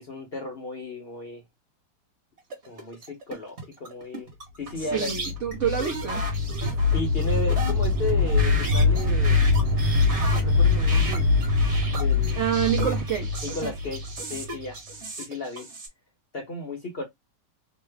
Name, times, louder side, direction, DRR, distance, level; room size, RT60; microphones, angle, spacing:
voice 1, 0.0-1.4 2.7-4.3 4.6-5.1 6.9-9.4 10.2-11.3 11.9-12.4 13.4-14.0 14.3-14.8 15.2-15.7 16.3-17.0, left 2 dB, 50° left, 0.8 m, -34 dB
sound 1, 2.4-15.9, right 3 dB, 45° right, 1.4 m, -36 dB
voice 2, 4.7-6.3 12.4-13.4, right 9 dB, 70° right, 0.7 m, -27 dB
sound 2, 4.9-14.7, left 3 dB, 90° right, 1.3 m, -23 dB
3.1 x 2.2 x 3.2 m
omnidirectional pair, 1.9 m